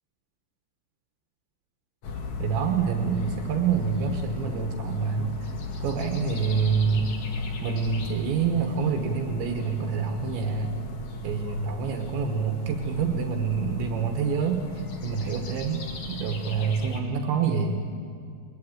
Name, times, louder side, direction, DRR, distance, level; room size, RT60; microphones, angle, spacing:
Soft neighbourhood sounds, 2.0-17.0, left 2 dB, 55° left, 2.2 m, -36 dB
voice 1, 2.4-5.5 5.8-7.1 7.6-10.8 11.2-14.7 15.0-17.8, right 6 dB, 75° right, 4 dB, 3.3 m, -27 dB
21.5 x 21.0 x 8.7 m, 2.3 s
omnidirectional pair, 5.5 m